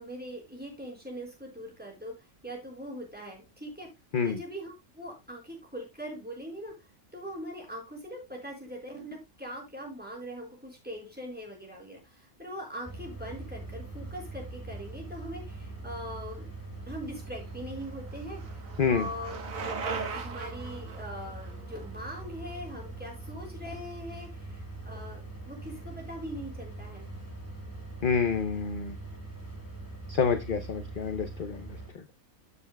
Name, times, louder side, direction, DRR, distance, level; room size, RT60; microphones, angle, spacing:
voice 1, 0.0-3.9 4.2-6.7 7.1-16.5 16.9-19.4 20.1-27.1, equal, 5° right, -1 dB, 4.4 m, -41 dB
sound 1, 12.8-31.9, right 2 dB, 15° left, 2.7 m, -42 dB
Bicycle, 17.3-23.2, right 4 dB, 75° right, 1.8 m, -40 dB
voice 2, 28.0-28.9 30.1-31.7, left 6 dB, 45° left, 8 dB, 0.8 m, -28 dB
14.0 x 6.9 x 2.3 m, 0.22 s
omnidirectional pair, 1.4 m